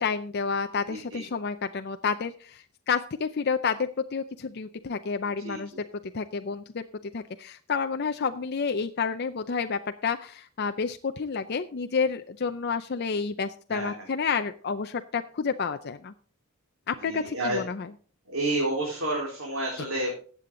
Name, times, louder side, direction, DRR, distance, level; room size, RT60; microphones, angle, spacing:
voice 1, 0.0-5.7 6.1-6.8 7.1-16.1 16.9-17.9, left 5 dB, 50° left, 8 dB, 0.5 m, -30 dB
voice 2, 0.9-1.2 5.4-5.8 13.7-14.1 17.0-17.6 18.3-20.2, right 1 dB, 65° right, -3 dB, 4.1 m, -30 dB
14.5 x 8.5 x 3.8 m, 0.43 s
head